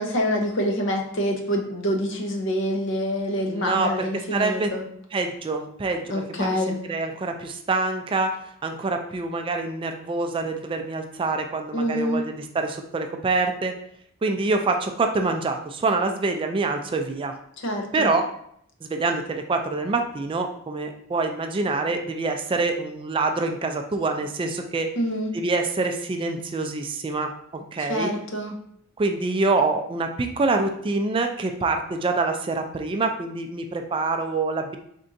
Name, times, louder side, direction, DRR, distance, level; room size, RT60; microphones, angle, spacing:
voice 1, 0.0-4.8 6.1-6.8 11.7-12.2 17.6-18.1 25.0-25.3 27.8-28.5, equal, 60° left, 2 dB, 0.7 m, -26 dB
voice 2, 3.5-4.7 5.1-8.4 8.6-13.7 14.2-17.3 17.9-18.3 18.8-24.9 25.3-28.1 29.0-34.8, right 3 dB, 25° right, 5 dB, 0.3 m, -26 dB
4.3 x 3.6 x 2.6 m, 0.68 s
head